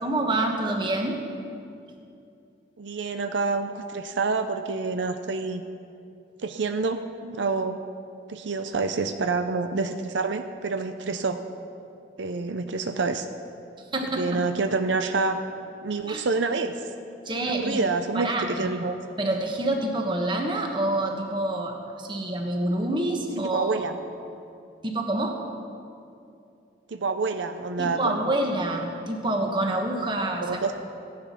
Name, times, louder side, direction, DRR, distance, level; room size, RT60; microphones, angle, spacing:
voice 1, 0.0-1.2 13.9-14.4 16.1-16.3 17.2-17.8 18.1-18.7 19.2-23.9 24.8-25.4 27.8-30.7, right 1 dB, 25° right, 2 dB, 1.3 m, -27 dB
voice 2, 2.8-5.6 6.4-7.8 8.3-11.4 12.2-13.3 14.2-15.4 15.8-16.8 17.3-19.0 23.4-23.9 26.9-28.2 30.4-30.7, right 4 dB, 80° right, 8 dB, 0.6 m, -27 dB
16.0 x 10.5 x 5.7 m, 2.6 s
head